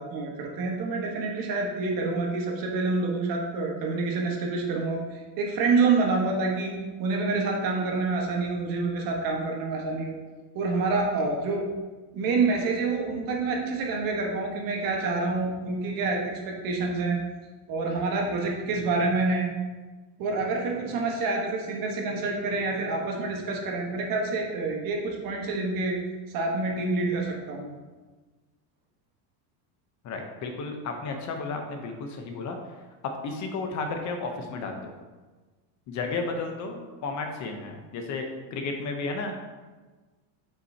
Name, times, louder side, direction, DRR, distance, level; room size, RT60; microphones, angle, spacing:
voice 1, 0.0-10.2 10.5-11.7 12.1-17.2 17.7-19.5 20.2-26.0 26.3-27.7, right 3 dB, 45° right, 0 dB, 1.3 m, -27 dB
voice 2, 30.0-32.6 33.2-34.9 35.9-39.3, left 3 dB, 35° left, 4 dB, 0.8 m, -33 dB
7.5 x 5.7 x 2.8 m, 1.3 s
cardioid pair, 155°, 49 cm